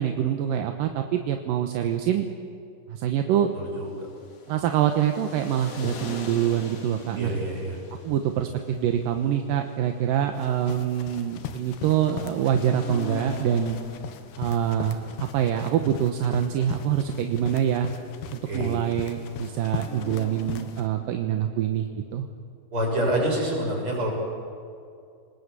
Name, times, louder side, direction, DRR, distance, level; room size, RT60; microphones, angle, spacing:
voice 1, 0.0-2.3 2.9-3.5 4.5-7.3 8.0-13.8 14.4-17.9 18.3-22.3, right 10 dB, 70° right, 5 dB, 2.5 m, -25 dB
voice 2, 3.6-4.1 7.2-7.8 18.5-18.8 22.7-24.1, right 1 dB, 30° right, -1 dB, 7.3 m, -27 dB
sound 1, 3.8-21.7, left 5 dB, 45° left, 2.7 m, -44 dB
sound 2, 10.4-20.9, left 8 dB, 85° left, 3.4 m, -39 dB
29.0 x 20.0 x 8.3 m, 2.4 s
omnidirectional pair, 4.7 m